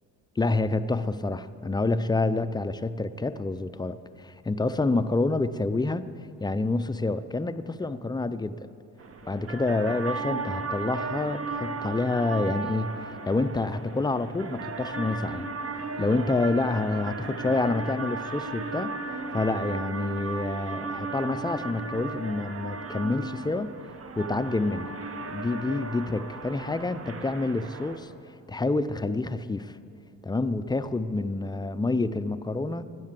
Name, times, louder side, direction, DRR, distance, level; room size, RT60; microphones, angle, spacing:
voice 1, 0.4-6.1 6.4-8.7 9.2-15.5 16.0-18.9 19.3-23.7 24.2-24.9 25.3-28.1 28.5-29.8 30.2-32.8, left 3 dB, 15° left, 12 dB, 0.5 m, -28 dB
sound 1, 9.0-28.0, right 4 dB, 50° right, 1.1 m, -36 dB
12.0 x 9.9 x 7.4 m, 2.5 s
cardioid pair, 90°, 30 cm